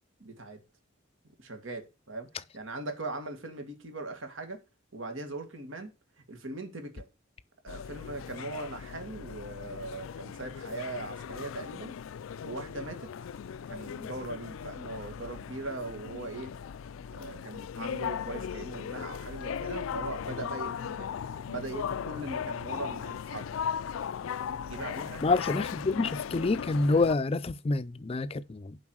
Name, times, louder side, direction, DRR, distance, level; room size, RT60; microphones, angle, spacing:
voice 1, 0.2-0.6 1.4-2.3 2.5-4.6 4.9-5.9 6.3-7.0 7.6-11.9 12.4-13.1 13.7-16.5 17.1-21.1 21.5-23.6 24.7-25.2, right 2 dB, 75° right, 2.0 m, -40 dB
sound 1, 7.7-27.1, left 7 dB, 90° left, 0.4 m, -38 dB
voice 2, 25.2-28.8, left 3 dB, 30° left, 0.4 m, -27 dB
7.3 x 5.4 x 6.3 m
head